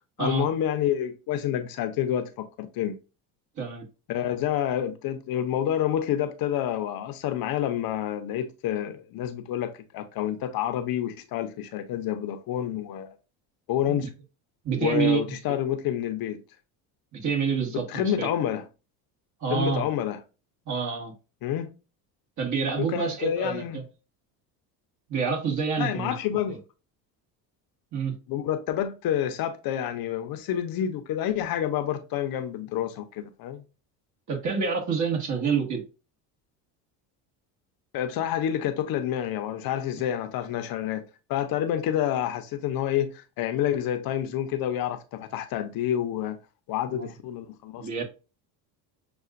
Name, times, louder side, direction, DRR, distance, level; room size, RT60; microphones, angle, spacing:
voice 1, 0.2-2.9 4.1-13.1 13.7-14.1 14.8-16.4 17.7-18.6 19.5-20.2 21.4-21.7 22.8-23.8 25.8-26.6 28.3-33.6 37.9-46.4 46.7-48.0, left 10 dB, 60° left, 0.7 m, -28 dB
voice 2, 3.6-3.9 13.9-14.0 14.6-15.2 17.1-18.3 19.4-19.9 20.6-21.1 22.4-23.8 25.1-26.1 26.5-26.6 27.9-28.1 34.3-35.8 46.9-47.1 47.8-48.0, right 6 dB, 45° right, 1.6 m, -27 dB
6.7 x 2.4 x 2.5 m
supercardioid pair, 105°, 41 cm